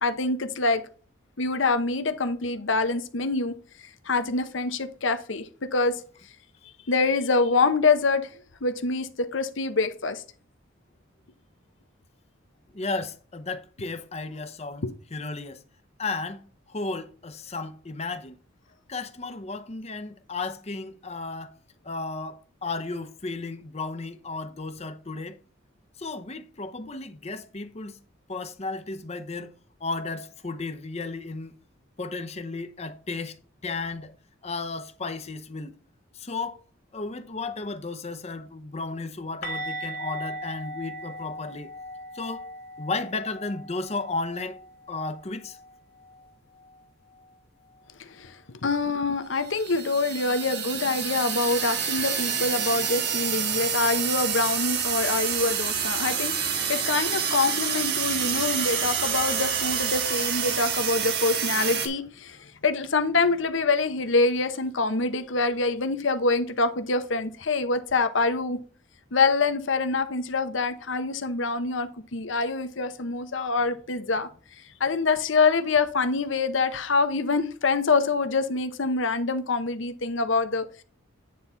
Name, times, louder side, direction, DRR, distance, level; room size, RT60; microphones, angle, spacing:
voice 1, 0.0-0.8 1.4-3.6 4.0-6.0 6.9-8.3 8.6-10.2 14.8-14.9 48.0-68.6 69.1-74.3 74.8-80.8, left 3 dB, 70° left, 0.9 m, -25 dB
voice 2, 12.7-14.8 15.1-15.6 16.0-18.4 18.9-21.6 21.8-25.4 26.0-28.0 28.3-29.5 29.8-31.6 32.0-33.4 33.6-34.1 34.4-35.8 36.1-36.6 36.9-41.7 42.1-42.5 42.8-44.6 44.9-45.6, left 3 dB, 30° left, 0.8 m, -34 dB
sound 1, 39.4-45.2 45.5-45.7 46.0-46.2 49.4-49.5, equal, 50° left, 1.7 m, -38 dB
sound 2, 49.4-61.9, right 7 dB, 55° right, 1.3 m, -28 dB
9.4 x 4.1 x 4.4 m
head